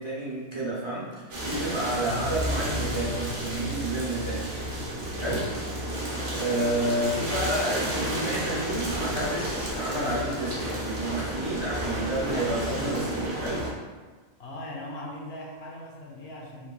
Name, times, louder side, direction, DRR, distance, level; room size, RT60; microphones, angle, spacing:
voice 1, 0.0-4.5 5.2-5.4 6.4-13.6, right 1 dB, 25° right, -7 dB, 0.8 m, -30 dB
sound 1, 1.3-13.7, right 1 dB, 75° right, 1.3 m, -31 dB
voice 2, 5.2-5.5 14.4-16.7, left 1 dB, 65° left, -2 dB, 1.0 m, -39 dB
sound 2, 8.1-13.1, equal, 45° left, 1.3 m, -45 dB
sound 3, 9.9-11.5, equal, 60° right, 0.4 m, -44 dB
5.4 x 3.3 x 2.3 m, 1.4 s
omnidirectional pair, 1.2 m